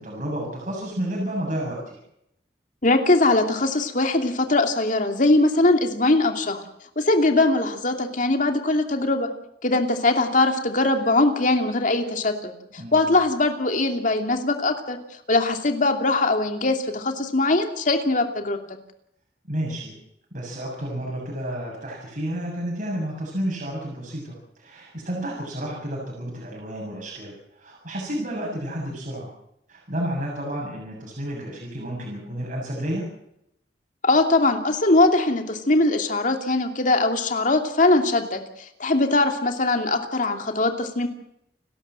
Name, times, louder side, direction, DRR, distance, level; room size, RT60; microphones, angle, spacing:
voice 1, 0.0-2.0 12.8-13.1 19.5-19.9 20.3-29.3 29.7-33.0, right 1 dB, 50° right, -2 dB, 7.4 m, -31 dB
voice 2, 2.8-6.6 7.0-9.3 9.6-12.5 12.9-15.0 15.3-18.6 34.0-41.1, left 2 dB, 50° left, 5 dB, 2.8 m, -21 dB
29.5 x 13.0 x 7.7 m, 0.78 s
head